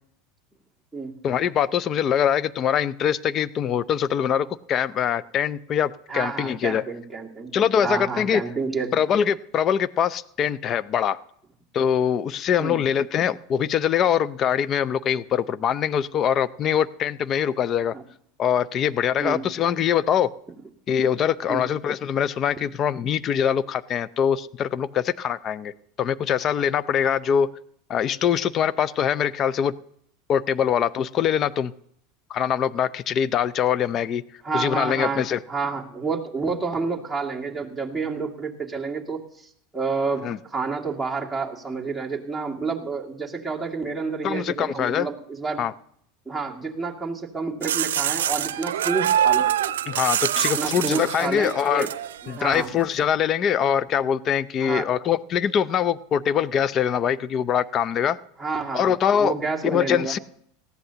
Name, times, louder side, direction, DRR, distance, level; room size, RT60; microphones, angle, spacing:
voice 1, 1.2-6.8 7.5-8.4 8.9-11.2 11.7-17.9 18.4-20.3 20.9-25.7 26.0-27.5 27.9-29.7 30.3-31.7 32.3-34.2 34.5-35.4 40.2-40.4 44.2-45.1 45.6-45.7 49.9-51.9 52.3-58.2 58.7-59.3 59.6-60.2, left 8 dB, 40° left, 18 dB, 0.6 m, -23 dB
voice 2, 6.1-7.5 7.8-8.9 12.6-12.8 17.9-18.0 19.2-19.4 21.5-21.7 22.6-22.7 34.4-45.6 46.3-49.5 50.6-51.9 52.2-52.7 54.6-54.9 58.4-60.1, right 4 dB, 5° right, -3 dB, 2.3 m, -29 dB
sound 1, 47.6-52.7, right 10 dB, 85° right, 0.6 m, -25 dB
19.0 x 14.0 x 2.9 m, 0.68 s
hypercardioid pair, 105°, 0 cm